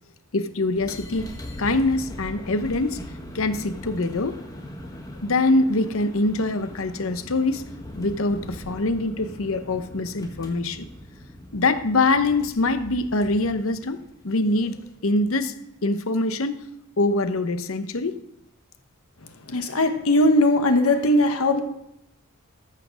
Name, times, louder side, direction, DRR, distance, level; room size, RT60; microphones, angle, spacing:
voice 1, 0.3-1.3 1.6-3.0 3.3-4.4 5.2-7.6 7.9-10.9 11.5-15.5 15.8-16.6 17.0-18.2, left 2 dB, 65° left, 11 dB, 0.8 m, -24 dB
sound 1, 0.6-15.1, equal, 15° left, 1.4 m, -40 dB
voice 2, 19.5-21.6, left 1 dB, 85° left, 6 dB, 1.3 m, -19 dB
14.0 x 5.8 x 6.2 m, 0.81 s
head